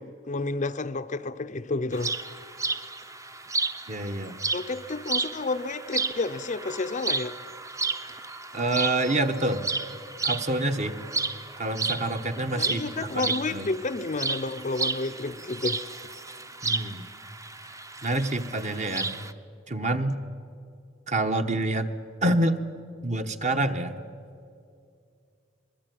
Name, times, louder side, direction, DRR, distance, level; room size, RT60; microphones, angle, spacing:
voice 1, 0.0-2.1 4.5-7.4 12.5-15.8, left 3 dB, 40° left, 0.6 m, -30 dB
sound 1, 1.9-19.3, right 3 dB, 15° right, 0.7 m, -33 dB
voice 2, 3.9-4.3 8.5-9.7 10.2-10.9 11.6-13.7 16.6-17.1 18.0-19.1 19.7-20.2 21.1-21.9 22.2-22.6 23.0-24.0, right 2 dB, 35° right, 1.2 m, -27 dB
23.5 x 21.5 x 9.3 m
head